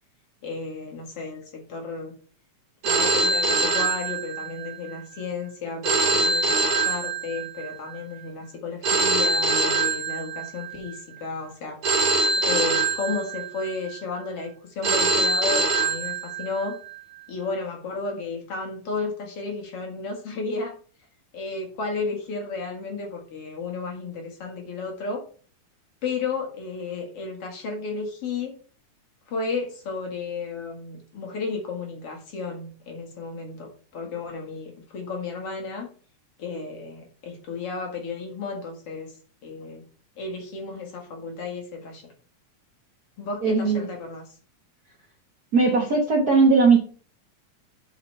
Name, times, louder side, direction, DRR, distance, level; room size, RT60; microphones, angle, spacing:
voice 1, 0.4-2.1 2.8-11.8 12.4-16.8 17.3-20.8 21.3-25.2 26.0-28.6 29.3-35.9 36.4-39.1 39.4-39.8 40.2-42.1 43.2-44.3, left 4 dB, 55° left, 2 dB, 2.6 m, -33 dB
Telephone, 2.8-4.7 5.8-7.7 8.8-10.7 11.8-13.7 14.8-16.7, right 3 dB, 75° right, 3.2 m, -23 dB
voice 2, 43.4-43.9 45.5-46.8, right 4 dB, 45° right, -1 dB, 1.3 m, -18 dB
7.7 x 4.9 x 5.5 m, 0.40 s
omnidirectional pair, 3.3 m